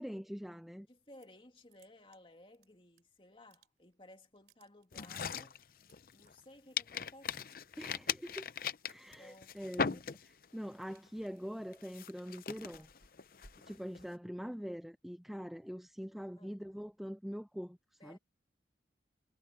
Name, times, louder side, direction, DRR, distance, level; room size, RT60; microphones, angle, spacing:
voice 1, 0.0-0.9 7.8-8.5 8.9-12.9 13.6-18.2, equal, ahead, 0.4 m, -44 dB
voice 2, 0.9-5.7 6.1-7.6 9.1-10.0 11.4-11.5 16.4-16.6 18.0-18.2, left 1 dB, 30° left, 2.4 m, -58 dB
sound 1, 0.9-1.4 1.7-3.0 3.3-4.0 4.3-6.3 6.9-7.6 7.9-8.2 8.5-9.5 9.9-14.5, right 3 dB, 60° right, 3.1 m, -66 dB
sound 2, 4.9-6.4 6.8-10.6 10.9-11.2 11.7-14.1, left 6 dB, 50° left, 0.6 m, -39 dB
head